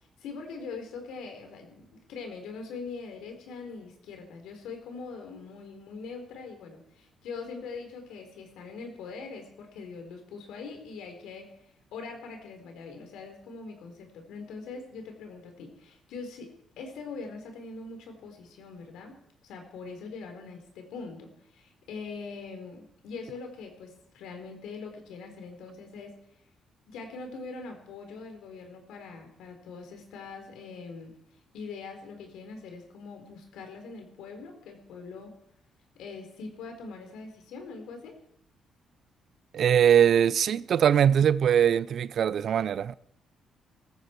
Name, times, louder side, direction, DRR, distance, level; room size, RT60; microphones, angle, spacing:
voice 1, 0.2-11.5 11.9-26.1 26.9-31.1 31.5-35.3 36.0-38.2, left 4 dB, 85° left, 4.3 m, -42 dB
voice 2, 39.5-42.9, right 9 dB, 60° right, 0.6 m, -22 dB
18.0 x 15.0 x 4.7 m
cardioid pair, 90°, 0 cm